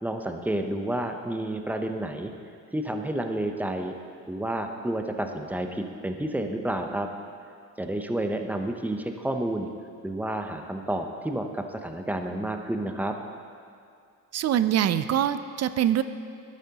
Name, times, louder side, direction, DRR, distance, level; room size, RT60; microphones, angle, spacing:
voice 1, 0.0-2.3 2.7-3.9 4.3-7.1 7.8-9.7 10.0-13.1, right 1 dB, 5° right, 5 dB, 0.7 m, -30 dB
voice 2, 14.3-16.0, right 10 dB, 50° right, 12 dB, 0.4 m, -24 dB
12.0 x 8.2 x 2.9 m, 2.3 s
cardioid pair, 85°, 33 cm